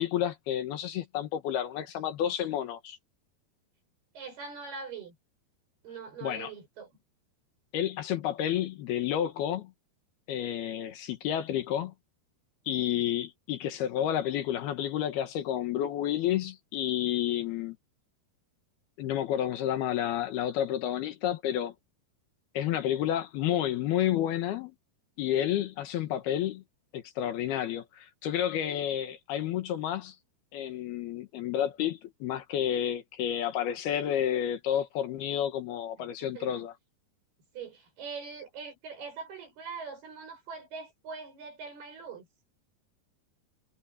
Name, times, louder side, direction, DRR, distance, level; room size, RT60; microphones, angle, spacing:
voice 1, 0.0-3.0 6.2-6.5 7.7-9.7 10.3-11.9 12.7-17.8 19.0-21.7 22.5-24.7 25.2-26.6 26.9-30.2 30.5-36.7, left 11 dB, 70° left, 3.1 m, -30 dB
voice 2, 4.2-5.2 5.8-6.9 36.0-36.6 37.5-42.3, right 5 dB, 65° right, 8.9 m, -42 dB
omnidirectional pair, 4.9 m